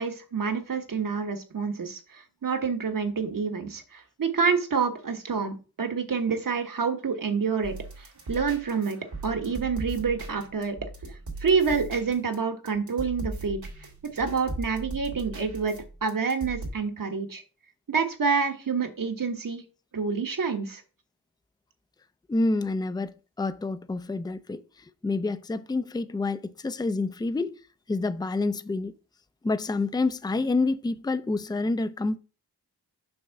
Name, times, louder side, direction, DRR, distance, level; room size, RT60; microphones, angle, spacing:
voice 1, 0.0-9.0 9.2-10.8 11.4-13.6 14.0-15.7 16.0-17.4 17.9-19.6 19.9-20.8, right 5 dB, 55° right, 1.3 m, -28 dB
sound 1, 7.6-12.3 12.6-16.7, right 2 dB, 80° right, 2.5 m, -38 dB
voice 2, 22.3-24.6 25.0-27.6 27.9-28.9 29.4-32.2, left 3 dB, 10° left, 0.5 m, -28 dB
6.2 x 3.5 x 5.9 m
cardioid pair, 50°, 39 cm